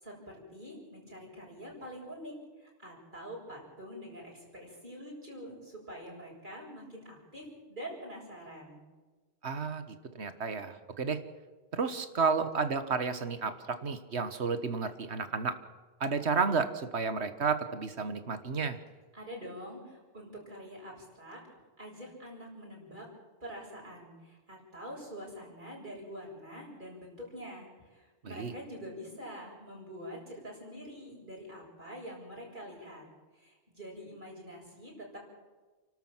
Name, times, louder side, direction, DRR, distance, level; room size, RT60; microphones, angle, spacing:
voice 1, 0.5-8.8 19.1-21.4 21.8-23.1 23.4-33.1 33.3-35.2, equal, 45° right, -2 dB, 7.5 m, -45 dB
voice 2, 9.4-11.2 11.7-15.6 16.0-18.8 28.2-28.5, right 5 dB, 75° right, 10 dB, 1.8 m, -32 dB
29.5 x 12.5 x 7.5 m, 1.3 s
omnidirectional pair, 1.1 m